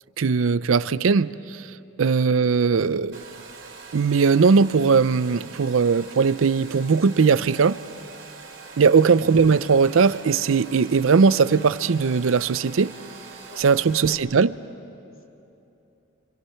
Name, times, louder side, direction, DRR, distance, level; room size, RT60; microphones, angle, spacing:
voice 1, 0.2-1.6 2.0-3.2 3.9-7.8 8.8-12.9 13.6-14.6, right 5 dB, 80° right, 16 dB, 0.5 m, -19 dB
Domestic sounds home sounds, 3.1-14.2, right 5 dB, 60° right, 3.2 m, -43 dB
voice 2, 13.5-14.4 14.9-15.2, left 2 dB, 90° left, 1 dB, 2.6 m, -49 dB
29.5 x 25.5 x 5.7 m, 2.8 s
head